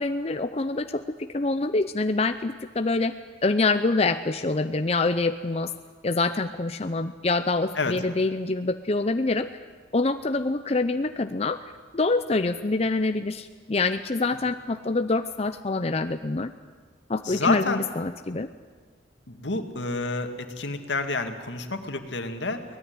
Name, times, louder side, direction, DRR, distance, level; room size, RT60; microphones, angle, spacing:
voice 1, 0.0-3.1 3.4-5.7 6.0-9.5 9.9-16.5 17.1-18.5, left 3 dB, 35° left, 9 dB, 0.6 m, -26 dB
voice 2, 17.2-17.8 19.3-22.6, left 3 dB, 85° left, 6 dB, 2.1 m, -29 dB
23.5 x 18.5 x 9.5 m, 1.5 s
head